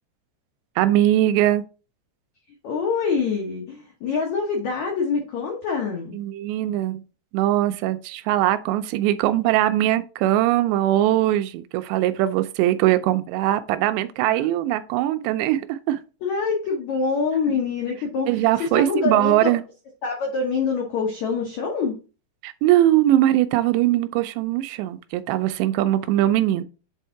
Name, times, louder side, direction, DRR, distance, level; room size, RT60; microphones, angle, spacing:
voice 1, 0.8-1.6 6.1-7.0 7.3-16.0 18.3-19.6 22.4-26.6, right 13 dB, 85° right, 2.6 m, -21 dB
voice 2, 2.6-6.2 14.3-14.5 16.2-19.5 20.0-22.0, left 5 dB, 90° left, 1.6 m, -25 dB
7.6 x 3.6 x 4.5 m
omnidirectional pair, 5.1 m